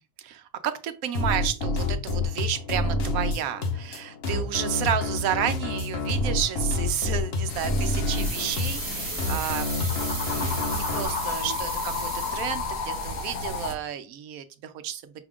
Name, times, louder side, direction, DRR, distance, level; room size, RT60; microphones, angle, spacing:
voice 1, 0.2-15.1, right 10 dB, 85° right, 10 dB, 1.0 m, -31 dB
sound 1, 1.1-11.0, left 2 dB, 50° left, 1.0 m, -28 dB
sound 2, 7.5-13.7, left 4 dB, 90° left, 1.4 m, -32 dB
sound 3, 8.0-12.8 13.1-13.2, right 3 dB, 50° right, 1.4 m, -36 dB
5.7 x 2.4 x 3.5 m, 0.33 s
omnidirectional pair, 1.5 m